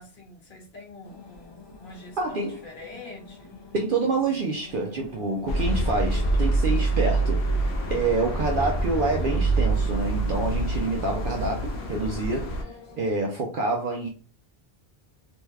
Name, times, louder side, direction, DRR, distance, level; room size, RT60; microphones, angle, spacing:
voice 1, 0.0-3.6, left 2 dB, 55° left, 1.0 m, -45 dB
sound 1, 1.0-13.1, left 4 dB, 40° left, 0.4 m, -46 dB
voice 2, 2.2-2.6 3.7-14.1, right 3 dB, 60° right, 0.7 m, -27 dB
sound 2, 5.5-12.6, right 2 dB, 80° left, 0.8 m, -25 dB
2.7 x 2.2 x 3.2 m
omnidirectional pair, 1.1 m